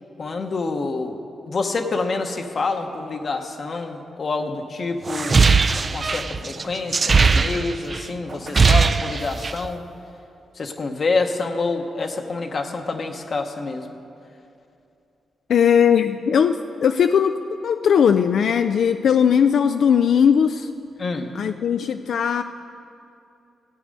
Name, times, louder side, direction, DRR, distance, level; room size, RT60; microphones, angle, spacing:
voice 1, 0.2-1.2 1.5-5.4 5.9-9.8 10.5-13.9 21.0-21.3, left 3 dB, 50° left, 4 dB, 0.9 m, -27 dB
sound 1, 5.1-8.0 8.3-9.7, right 4 dB, 40° right, 0.4 m, -19 dB
voice 2, 15.5-20.7 21.3-22.4, left 7 dB, 70° left, 8 dB, 0.3 m, -18 dB
15.0 x 8.1 x 5.3 m, 2.6 s
cardioid pair, 80°, 0 cm